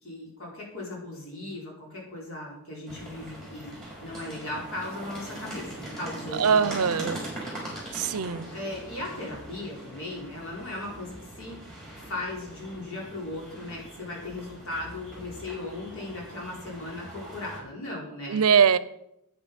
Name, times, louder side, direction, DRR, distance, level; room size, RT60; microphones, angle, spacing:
voice 1, 0.0-7.1 8.5-11.6 12.0-18.4, left 2 dB, 65° left, -2 dB, 4.1 m, -37 dB
sound 1, 2.9-17.6, right 1 dB, ahead, 4.7 m, -41 dB
voice 2, 6.3-7.2 7.9-8.5 18.3-18.8, right 6 dB, 75° right, 16 dB, 0.6 m, -22 dB
9.8 x 9.0 x 5.2 m, 0.80 s
head